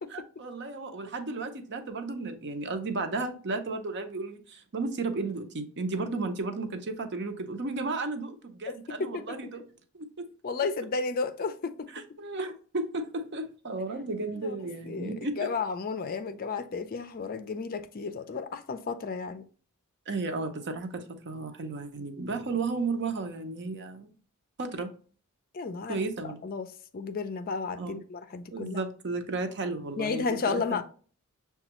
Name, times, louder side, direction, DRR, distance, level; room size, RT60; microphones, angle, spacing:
voice 1, 0.1-9.6 10.2-10.3 11.9-15.5 20.1-24.1 24.6-24.9 25.9-26.4 27.8-28.0 28.5-30.8, right 3 dB, 50° right, 0.7 m, -34 dB
voice 2, 9.0-9.4 10.4-12.0 14.4-14.6 14.9-19.4 25.5-26.0 26.4-26.7 26.9-28.8 30.0-30.8, left 4 dB, 40° left, 0.4 m, -33 dB
6.9 x 2.3 x 2.9 m
head